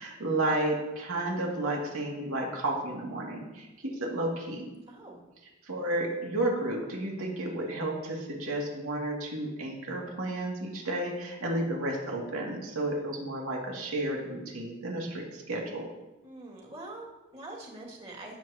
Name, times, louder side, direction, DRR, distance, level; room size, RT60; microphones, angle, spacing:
voice 1, 0.0-4.7 5.7-15.9, right 1 dB, 85° right, -1 dB, 2.4 m, -32 dB
voice 2, 4.9-5.3 16.2-18.4, right 2 dB, 30° right, -4 dB, 2.5 m, -44 dB
17.5 x 7.9 x 2.9 m, 1.0 s
head